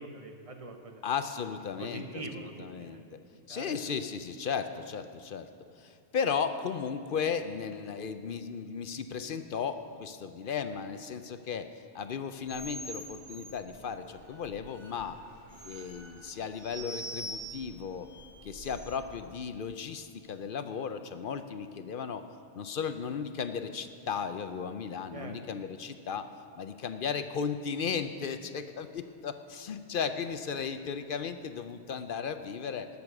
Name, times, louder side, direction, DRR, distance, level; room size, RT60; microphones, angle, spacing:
voice 1, 0.0-1.0 1.8-3.0 3.5-3.8 25.1-25.3, right 3 dB, 30° right, 4 dB, 1.1 m, -43 dB
voice 2, 1.0-3.2 3.5-5.5 5.8-11.7 11.9-15.2 15.6-18.1 18.4-22.2 22.5-26.3 26.6-32.9, left 6 dB, 60° left, 9 dB, 0.7 m, -35 dB
sound 1, 12.4-19.1, right 1 dB, 50° right, 1.8 m, -45 dB
19.0 x 7.0 x 5.9 m, 2.3 s
omnidirectional pair, 1.2 m